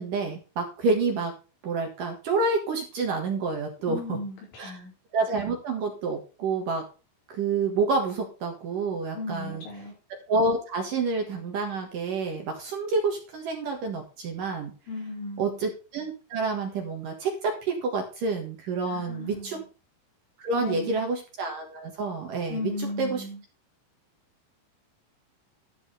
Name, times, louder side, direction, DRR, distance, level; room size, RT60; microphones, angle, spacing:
voice 1, 0.0-1.3 1.6-4.2 4.6-4.8 5.1-6.9 7.3-9.6 10.3-14.7 15.4-19.6 20.4-23.2, right 3 dB, 60° right, 3 dB, 2.6 m, -28 dB
voice 2, 3.8-4.4 4.6-4.9 9.1-9.9 14.9-15.6 18.9-19.6 20.5-21.1 22.5-23.4, left 2 dB, 80° left, -3 dB, 7.4 m, -35 dB
12.5 x 4.7 x 6.6 m, 0.34 s
omnidirectional pair, 5.4 m